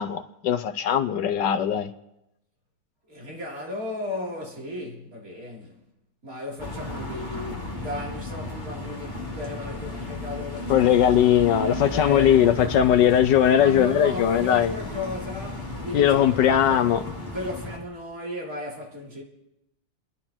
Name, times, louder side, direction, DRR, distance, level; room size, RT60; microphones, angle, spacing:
voice 1, 0.0-1.9 10.7-14.7 15.9-17.0, left 10 dB, 70° left, 1.3 m, -20 dB
voice 2, 3.1-5.8 6.2-11.3 11.9-12.7 13.6-16.9 17.3-19.2, left 2 dB, 45° right, 3.8 m, -35 dB
sound 1, 6.6-17.8, left 2 dB, 25° left, 2.7 m, -34 dB
29.0 x 10.5 x 4.4 m
omnidirectional pair, 2.1 m